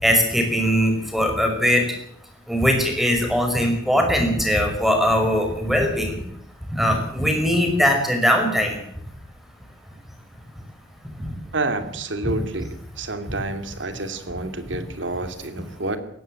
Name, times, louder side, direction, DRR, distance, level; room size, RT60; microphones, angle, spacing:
voice 1, 0.0-1.8 2.5-6.1 6.7-8.8 12.2-12.3, equal, ahead, 4 dB, 5.3 m, -20 dB
voice 2, 11.5-12.7 13.0-16.0, right 2 dB, 80° right, 9 dB, 2.6 m, -29 dB
19.0 x 16.0 x 8.9 m, 0.71 s
head